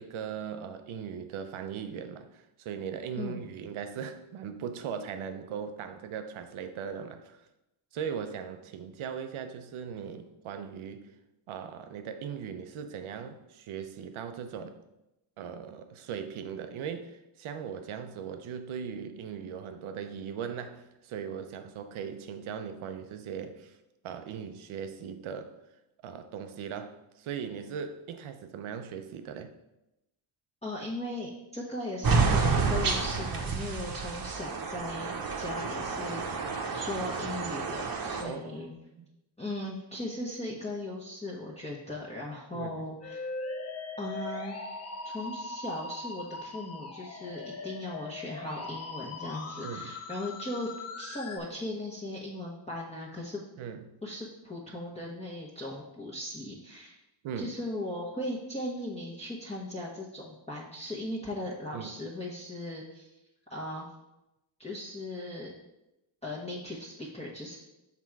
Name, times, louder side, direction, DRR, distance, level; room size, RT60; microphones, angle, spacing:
voice 1, 0.0-7.4 7.9-11.1 11.5-14.8 15.4-23.8 24.0-25.5 26.0-29.5 33.8-34.0 38.2-38.7 39.0-39.1 42.5-42.9 49.6-49.9 53.6-54.0 57.2-57.6 61.7-61.9, right 7 dB, 80° right, 8 dB, 0.8 m, -39 dB
voice 2, 30.6-38.7 39.4-43.3 44.0-44.6 45.1-50.7 51.0-53.4 54.0-57.0 57.4-63.1 63.5-63.9 64.6-65.5 66.2-67.6, left 1 dB, 15° left, -5 dB, 1.1 m, -38 dB
sound 1, 32.0-38.2, right 4 dB, 45° right, 1.0 m, -29 dB
Musical instrument, 43.0-51.4, left 3 dB, 30° left, 0.8 m, -40 dB
6.0 x 3.7 x 4.6 m, 0.92 s
cardioid pair, 75°, 48 cm